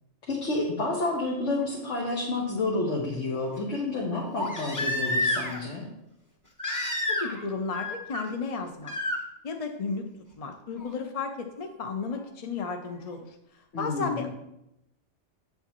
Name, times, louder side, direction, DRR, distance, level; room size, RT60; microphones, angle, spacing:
voice 1, 0.3-5.9 13.7-14.3, left 2 dB, 75° left, -3 dB, 1.5 m, -30 dB
Crying sobbing, 1.6-1.7 4.3-5.7 6.6-7.5 7.7-8.2 8.9-9.2 10.8-10.9, left 1 dB, 15° left, 0.8 m, -29 dB
voice 2, 7.1-8.9 9.4-10.1 10.4-13.3 13.8-14.3, left 4 dB, 45° left, 4 dB, 0.5 m, -33 dB
8.1 x 6.6 x 2.9 m, 0.85 s
omnidirectional pair, 1.3 m